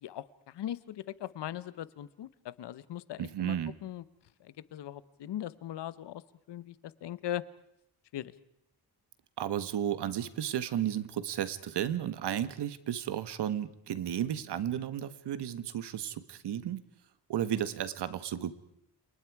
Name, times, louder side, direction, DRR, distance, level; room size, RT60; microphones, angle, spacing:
voice 1, 0.0-3.6 3.8-4.0 4.4-6.2 6.5-6.7 7.0-7.4 8.1-8.3, left 12 dB, 90° left, 17 dB, 1.1 m, -39 dB
voice 2, 3.2-3.7 9.4-16.8 17.3-18.6, right 10 dB, 80° right, 14 dB, 1.5 m, -33 dB
30.0 x 28.5 x 4.8 m, 0.76 s
wide cardioid pair, 135°, 40 cm